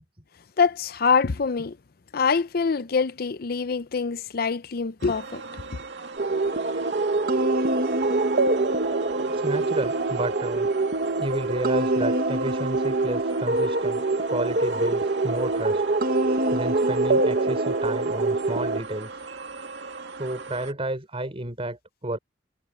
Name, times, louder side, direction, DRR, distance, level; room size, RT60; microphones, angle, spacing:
voice 1, 0.6-1.8 2.1-5.4, left 5 dB, 55° left, 0.6 m, -24 dB
sound 1, 5.0-20.7, right 4 dB, 85° right, 2.2 m, -39 dB
sound 2, 6.2-18.8, right 2 dB, 55° right, 1.5 m, -24 dB
voice 2, 9.3-10.7 11.2-15.8 16.5-19.2 20.1-22.2, right 1 dB, 35° right, 4.7 m, -31 dB
head